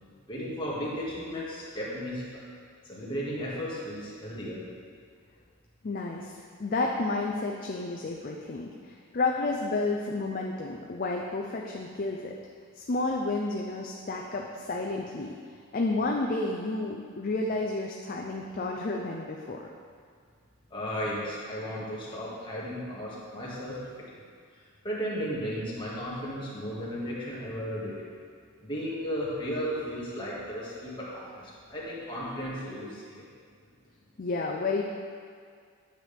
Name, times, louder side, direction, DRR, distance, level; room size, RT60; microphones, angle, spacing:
voice 1, 0.3-2.4 2.8-4.6 20.7-23.8 24.1-24.2 24.5-28.0 28.6-33.3, equal, 20° left, -7 dB, 1.9 m, -35 dB
voice 2, 5.8-12.3 12.7-15.3 15.7-19.7 34.2-34.8, left 3 dB, 40° left, 0 dB, 0.5 m, -31 dB
9.0 x 7.4 x 3.4 m, 2.1 s
head